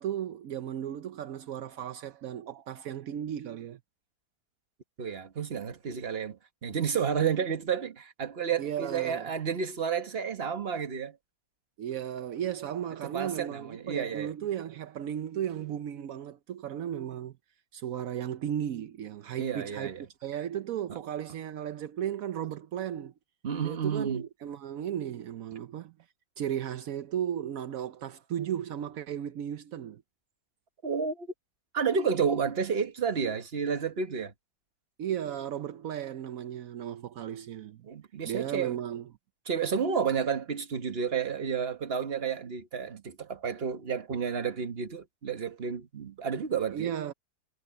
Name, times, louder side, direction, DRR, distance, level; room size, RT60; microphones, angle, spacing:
voice 1, 0.0-3.8 8.6-9.3 11.8-17.4 17.7-19.9 20.2-23.1 23.6-25.9 26.4-30.0 35.0-37.8 38.2-39.1 46.7-47.1, right 10 dB, 70° right, 0.8 m, -35 dB
voice 2, 5.0-11.2 13.1-14.3 19.4-20.0 20.9-21.0 23.4-24.2 30.8-31.3 31.7-34.3 37.8-38.8 39.5-46.9, right 6 dB, 35° right, 1.3 m, -31 dB
omnidirectional pair, 2.2 m